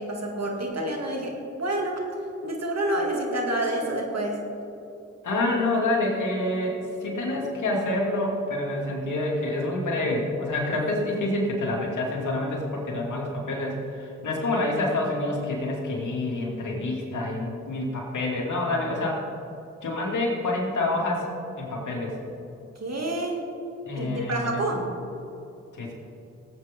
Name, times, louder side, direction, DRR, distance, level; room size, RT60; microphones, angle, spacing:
voice 1, 0.0-2.0 2.4-4.4 22.8-23.5 24.0-24.9, right 1 dB, 55° right, 0 dB, 2.7 m, -28 dB
voice 2, 5.2-19.2 19.8-21.2 21.6-22.2 23.9-24.3 25.7-25.9, left 2 dB, 75° left, -2 dB, 2.8 m, -27 dB
17.0 x 8.6 x 3.8 m, 2.7 s
cardioid pair, 45°, 31 cm